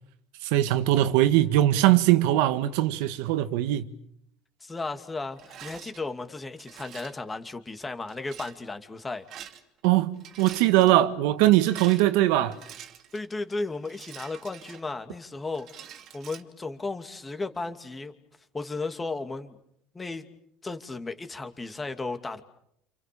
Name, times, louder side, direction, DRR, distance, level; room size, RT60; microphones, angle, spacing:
voice 1, 0.4-3.9 9.8-12.6, right 14 dB, 80° right, 1.7 m, -21 dB
voice 2, 4.6-9.3 13.1-18.1 18.5-19.6 19.9-20.3 20.6-22.4, left 3 dB, 15° left, 2.6 m, -35 dB
Rattle, 5.4-6.0 6.6-7.2 8.1-8.6 9.2-9.9 10.1-10.9 11.5-13.3 13.9-15.2 15.5-16.4, right 10 dB, 50° right, 2.6 m, -46 dB
29.0 x 29.0 x 7.0 m
supercardioid pair, 125°, 0 cm